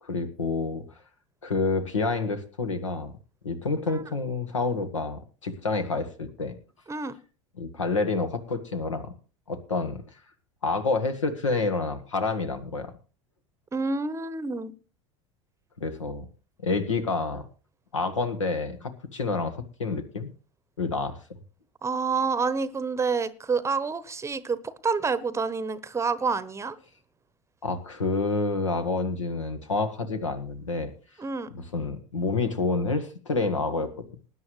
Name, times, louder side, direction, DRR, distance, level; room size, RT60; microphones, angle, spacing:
voice 1, 0.0-0.8 1.4-3.1 3.4-6.6 7.6-9.1 9.5-10.0 10.6-12.9 15.8-16.3 16.6-17.4 17.9-20.3 20.8-21.2 27.6-30.9 31.7-34.1, left 3 dB, 85° left, 8 dB, 1.5 m, -28 dB
voice 2, 13.7-14.7 21.8-26.8 31.2-31.5, right 4 dB, 20° right, 16 dB, 0.9 m, -28 dB
20.0 x 9.7 x 3.1 m, 0.36 s
figure-of-eight pair, 80°, 16 cm